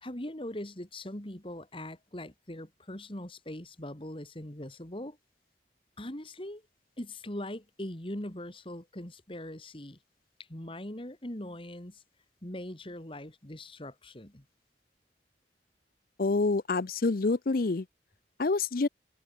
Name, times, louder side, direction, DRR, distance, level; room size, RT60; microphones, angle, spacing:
voice 1, 0.0-5.2 6.0-6.6 7.0-10.0 10.5-12.0 12.4-14.4, left 1 dB, 30° left, 2.5 m, -41 dB
voice 2, 16.2-17.8 18.4-18.9, left 3 dB, 55° left, 0.6 m, -27 dB
head